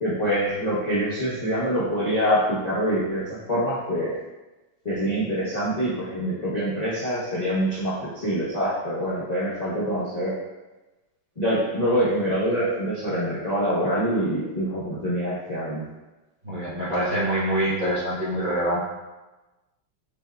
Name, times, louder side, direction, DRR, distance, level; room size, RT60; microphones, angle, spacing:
voice 1, 0.0-4.1 4.8-10.3 11.4-15.8, equal, 55° left, -9 dB, 0.4 m, -25 dB
voice 2, 16.4-18.8, right 1 dB, 40° right, -11 dB, 0.7 m, -25 dB
6.6 x 3.6 x 2.2 m, 1.1 s
omnidirectional pair, 2.4 m